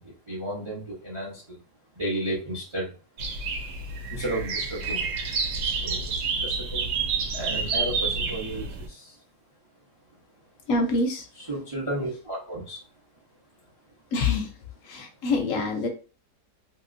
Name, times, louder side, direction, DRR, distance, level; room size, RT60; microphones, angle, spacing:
voice 1, 0.0-1.6 1.9-2.9 4.1-5.1 5.7-6.9 7.3-9.2 11.3-12.8, right 1 dB, 35° right, -4 dB, 0.5 m, -33 dB
sound 1, 3.2-8.9, right 4 dB, 85° right, 1.3 m, -29 dB
voice 2, 10.7-11.2 14.1-14.5 14.9-15.9, left 3 dB, 70° left, 3 dB, 0.8 m, -25 dB
3.0 x 2.8 x 2.5 m, 0.35 s
omnidirectional pair, 1.8 m